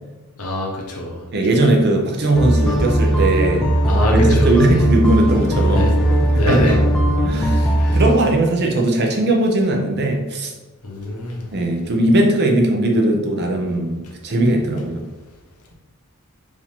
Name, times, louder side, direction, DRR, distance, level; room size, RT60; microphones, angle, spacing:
voice 1, 0.4-1.3 3.9-4.7 5.7-6.0 6.4-6.8 7.8-8.0 10.8-11.5, left 1 dB, 85° left, 0 dB, 1.0 m, -24 dB
voice 2, 1.3-3.7 4.1-5.9 6.5-6.8 7.2-10.5 11.5-15.0, right 1 dB, 50° right, 1 dB, 0.7 m, -18 dB
sound 1, 2.3-8.1, right 1 dB, 5° left, 0.5 m, -18 dB
4.8 x 2.7 x 3.6 m, 1.2 s
head